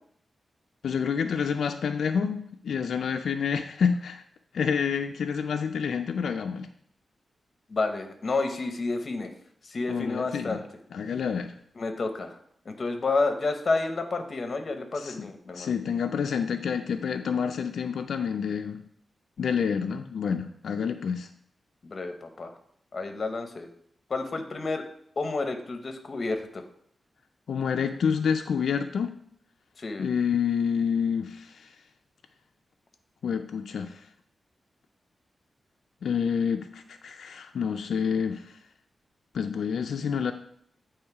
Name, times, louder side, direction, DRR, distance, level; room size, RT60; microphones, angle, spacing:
voice 1, 0.8-4.2 4.5-6.7 9.9-10.6 10.9-11.5 14.9-15.3 15.5-18.8 19.4-21.3 27.5-29.2 30.0-31.7 33.2-34.0 36.0-38.5 39.3-40.3, left 6 dB, 90° left, 5 dB, 0.4 m, -28 dB
voice 2, 7.7-9.3 9.6-10.6 11.8-12.3 12.7-15.7 21.8-22.5 22.9-23.7 24.1-24.8 25.2-26.6 29.8-30.1, left 3 dB, 45° left, 6 dB, 0.8 m, -30 dB
8.8 x 3.1 x 4.7 m, 0.67 s
wide cardioid pair, 140°, 0 cm